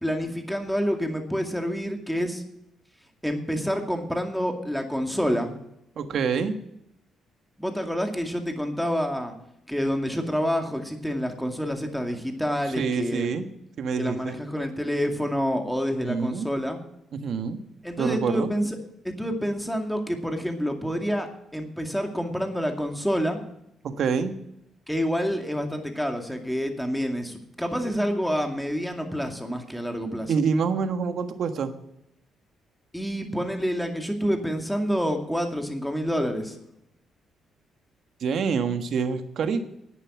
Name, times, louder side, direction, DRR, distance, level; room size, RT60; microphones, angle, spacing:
voice 1, 0.0-2.4 3.2-5.6 7.6-9.3 9.7-13.3 14.0-16.8 17.8-18.8 19.0-23.4 24.9-30.3 32.9-36.6, equal, ahead, 4 dB, 2.2 m, -28 dB
voice 2, 6.0-6.5 12.8-13.5 13.8-14.4 16.0-16.5 17.1-17.6 18.0-18.5 23.8-24.3 30.3-31.7 38.2-39.7, right 5 dB, 65° right, 8 dB, 1.4 m, -26 dB
11.0 x 9.3 x 7.4 m, 0.78 s
cardioid pair, 90°, 0 cm